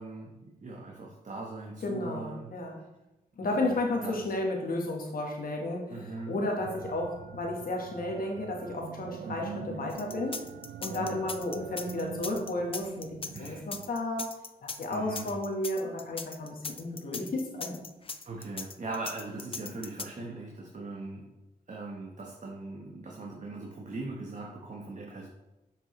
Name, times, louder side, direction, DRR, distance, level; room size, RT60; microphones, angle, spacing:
voice 1, 0.0-2.5 3.6-4.3 5.9-6.4 9.2-9.7 10.9-11.2 13.3-13.6 14.9-15.3 18.2-21.3 21.7-25.3, right 2 dB, 50° right, -1 dB, 1.1 m, -40 dB
voice 2, 1.8-2.8 3.4-6.0 6.3-10.4 10.8-14.3 14.6-17.8, left 2 dB, 70° left, 0 dB, 1.4 m, -33 dB
sound 1, 6.6-13.9, right 9 dB, 85° right, 0.4 m, -44 dB
sound 2, 9.9-20.0, left 4 dB, 35° left, 0.5 m, -39 dB
6.8 x 5.1 x 3.2 m, 0.99 s
cardioid pair, 55°, 16 cm